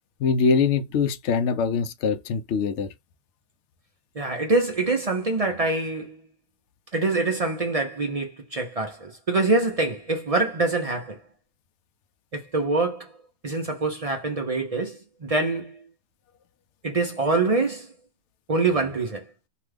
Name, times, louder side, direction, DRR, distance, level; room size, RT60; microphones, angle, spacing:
voice 1, 0.2-2.9, left 5 dB, 65° left, 0.7 m, -23 dB
voice 2, 4.2-6.2 6.9-11.2 12.3-13.1 13.4-15.8 16.8-17.9 18.5-19.2, right 3 dB, 55° right, 0.4 m, -25 dB
2.9 x 2.3 x 3.2 m
omnidirectional pair, 1.6 m